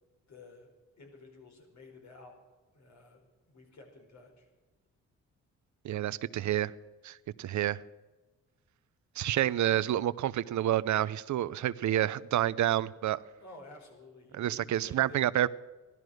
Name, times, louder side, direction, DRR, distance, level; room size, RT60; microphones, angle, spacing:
voice 1, 0.3-0.7 1.0-2.4 2.7-3.2 3.5-4.5 9.6-9.8 13.4-15.2, left 2 dB, 65° left, 2 dB, 4.7 m, -52 dB
voice 2, 5.8-6.7 7.0-7.8 9.2-13.2 14.4-15.5, right 12 dB, 70° right, 18 dB, 0.7 m, -29 dB
16.5 x 12.5 x 6.4 m, 1.2 s
cardioid pair, 65°, 30 cm